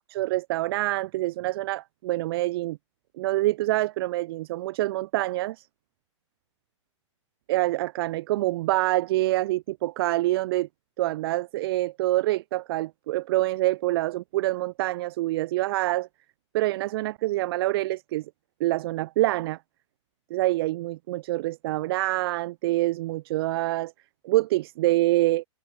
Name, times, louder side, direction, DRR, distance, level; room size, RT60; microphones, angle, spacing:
voice 1, 0.1-2.8 3.2-5.7 7.5-10.7 11.0-16.1 16.5-18.3 18.6-19.6 20.3-23.9 24.2-25.5, right 17 dB, 50° right, 0.8 m, -26 dB
hypercardioid pair, 120°, 16 cm